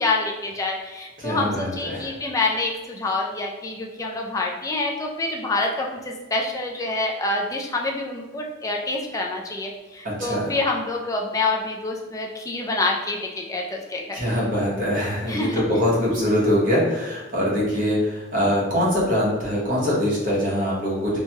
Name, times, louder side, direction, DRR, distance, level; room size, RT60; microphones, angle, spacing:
voice 1, 0.0-14.2 15.3-15.6, left 2 dB, 15° left, 0 dB, 0.3 m, -27 dB
voice 2, 1.2-2.1 10.0-10.5 14.1-21.2, equal, 45° right, -5 dB, 1.0 m, -23 dB
3.0 x 2.2 x 2.8 m, 1.2 s
head